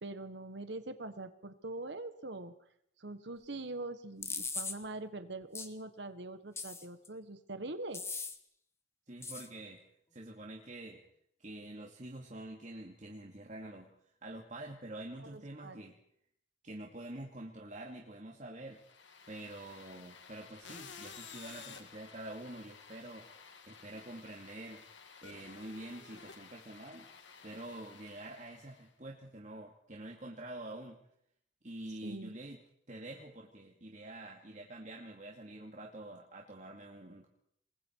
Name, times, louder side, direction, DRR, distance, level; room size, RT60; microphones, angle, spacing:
voice 1, 0.0-2.5 3.0-8.0 15.3-15.8 32.0-32.4, right 2 dB, 70° right, 10 dB, 1.5 m, -43 dB
sound 1, 4.2-4.8 5.5-5.7 6.6-7.1 7.9-8.4 9.2-9.5, left 4 dB, 15° left, 1.6 m, -39 dB
voice 2, 9.1-9.8 10.1-11.0 11.4-16.0 16.6-18.8 19.3-23.3 23.7-24.8 25.2-27.1 27.4-31.0 31.6-32.6 32.9-37.3, right 1 dB, 40° right, -1 dB, 2.6 m, -47 dB
sound 2, 18.7-28.9, left 5 dB, 80° left, 2.7 m, -53 dB
28.5 x 21.5 x 4.8 m, 0.70 s
head